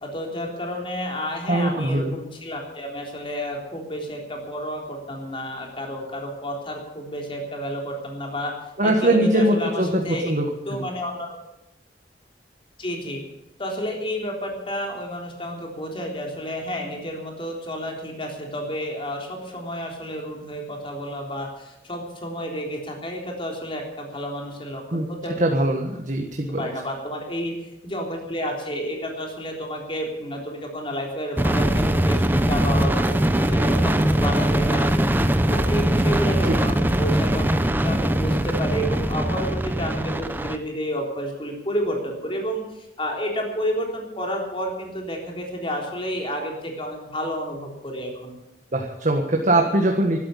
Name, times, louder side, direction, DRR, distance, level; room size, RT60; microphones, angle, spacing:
voice 1, 0.0-8.5 8.8-10.3 10.7-11.4 12.8-13.2 13.6-25.4 26.5-35.0 35.4-48.4, equal, 30° left, 1 dB, 3.6 m, -31 dB
voice 2, 1.5-2.2 8.8-10.4 10.7-10.8 24.9-25.1 25.4-26.6 48.7-50.2, right 1 dB, 45° right, 2 dB, 1.6 m, -21 dB
sound 1, 31.4-40.6, right 1 dB, 10° right, 0.8 m, -21 dB
12.5 x 12.5 x 8.5 m, 0.92 s
head